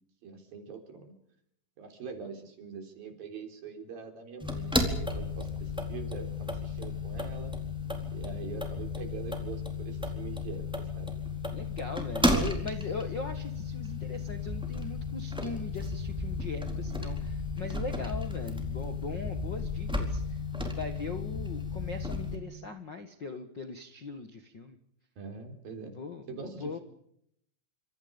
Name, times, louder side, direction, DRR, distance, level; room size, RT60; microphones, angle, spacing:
voice 1, 0.2-1.1 1.8-7.6 8.1-11.1 25.2-25.9 26.3-26.8, right 5 dB, 55° right, 6 dB, 5.4 m, -43 dB
sound 1, 4.4-22.4, left 2 dB, ahead, 3.5 m, -33 dB
voice 2, 11.5-20.2 20.6-24.8 25.9-26.8, left 4 dB, 85° left, 8 dB, 1.0 m, -40 dB
29.0 x 26.0 x 5.3 m, 0.71 s
omnidirectional pair, 5.1 m